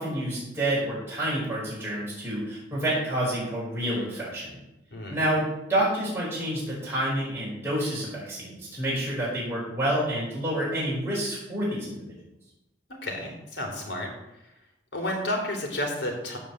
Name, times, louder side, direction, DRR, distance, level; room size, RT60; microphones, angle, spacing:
voice 1, 0.0-4.6 5.1-5.4 5.7-12.2, right 1 dB, 15° right, -8 dB, 5.2 m, -28 dB
voice 2, 13.0-14.1 14.9-16.4, left 1 dB, 80° left, 2 dB, 3.6 m, -31 dB
15.0 x 5.1 x 7.5 m, 0.91 s
head